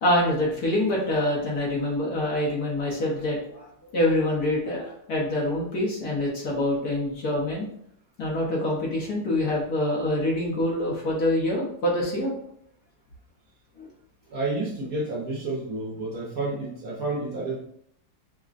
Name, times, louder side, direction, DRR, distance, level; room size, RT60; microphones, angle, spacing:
voice 1, 0.0-7.7 8.2-12.3 13.8-13.9, left 1 dB, 60° left, -3 dB, 1.2 m, -25 dB
voice 2, 14.3-17.6, right 2 dB, 60° right, -5 dB, 1.0 m, -30 dB
4.9 x 2.1 x 2.5 m, 0.66 s
omnidirectional pair, 2.0 m